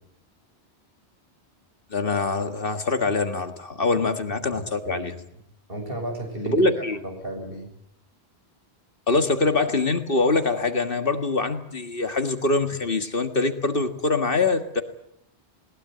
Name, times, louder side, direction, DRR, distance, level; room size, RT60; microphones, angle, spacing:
voice 1, 1.9-5.1 6.5-7.0 9.1-14.8, left 3 dB, 55° left, 7 dB, 1.9 m, -24 dB
voice 2, 4.5-5.4 5.7-7.7, right 1 dB, 60° right, 3 dB, 6.9 m, -34 dB
20.5 x 20.0 x 9.3 m, 0.72 s
omnidirectional pair, 1.1 m